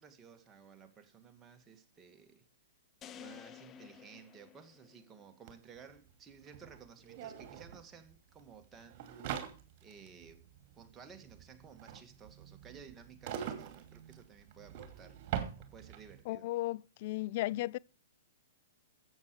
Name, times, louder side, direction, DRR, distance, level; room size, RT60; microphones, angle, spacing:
voice 1, 0.0-2.5 3.1-9.3 9.8-10.5 10.8-15.2 15.6-16.5, right 6 dB, 20° right, 2.2 m, -56 dB
sound 1, 3.0-5.3, left 10 dB, 25° left, 0.9 m, -52 dB
sound 2, 5.5-5.6 5.8-16.2, right 9 dB, 45° right, 2.7 m, -44 dB
voice 2, 16.3-17.8, left 17 dB, 50° left, 0.5 m, -35 dB
14.0 x 8.3 x 4.8 m
hypercardioid pair, 120°, 0 cm